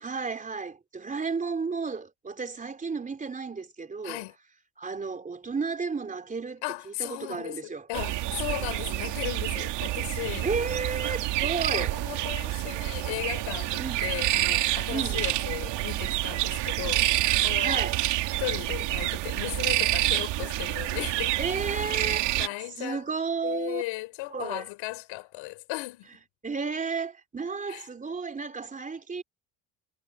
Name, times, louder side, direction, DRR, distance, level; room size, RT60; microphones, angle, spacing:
voice 1, 0.0-4.2 4.8-7.9 10.4-11.9 13.8-14.1 14.9-15.2 17.6-18.0 21.4-22.3 22.8-23.8 24.3-24.6 26.4-29.2, right 4 dB, 20° right, 4.0 m, -33 dB
voice 2, 4.0-4.4 6.6-10.5 11.7-17.9 18.4-21.4 22.4-23.0 23.4-26.1 27.7-27.9, left 20 dB, 85° left, 4.4 m, -36 dB
sound 1, 7.9-22.5, right 16 dB, 70° right, 2.8 m, -28 dB
cardioid pair, 155°, 44 cm